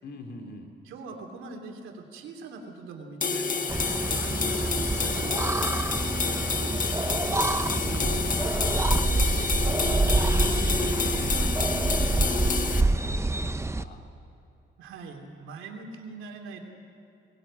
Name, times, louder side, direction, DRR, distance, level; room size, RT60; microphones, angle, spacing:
voice 1, 0.0-0.7 6.6-10.3 10.7-14.0, left 3 dB, 55° left, 3 dB, 2.6 m, -44 dB
voice 2, 0.8-3.8 4.0-6.2 14.8-16.6, right 4 dB, 85° right, 3 dB, 2.9 m, -42 dB
sound 1, 3.2-12.8, left 5 dB, 40° left, 1.5 m, -29 dB
sound 2, 3.7-13.8, right 2 dB, 15° right, 0.7 m, -27 dB
Accelerating revving vroom, 6.0-13.4, left 1 dB, 25° left, 4.7 m, -42 dB
20.5 x 17.5 x 8.7 m, 2.7 s
cardioid pair, 90°, 20 cm